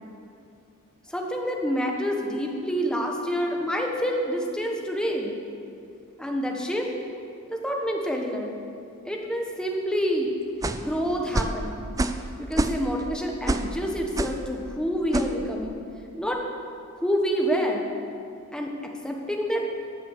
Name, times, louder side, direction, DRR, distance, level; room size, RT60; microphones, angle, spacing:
voice 1, 1.1-5.3 6.2-6.9 7.5-8.5 9.0-10.3 10.8-11.8 12.4-15.8 16.2-16.4 16.9-17.9 18.5-18.7 19.0-19.6, equal, 5° left, 1 dB, 1.2 m, -27 dB
sound 1, 10.6-10.9 11.3-11.6 12.0-12.3 12.5-13.0 13.5-13.7 14.2-14.4 15.1-15.3, right 2 dB, 15° right, 0.4 m, -26 dB
14.0 x 8.0 x 6.7 m, 2.6 s
head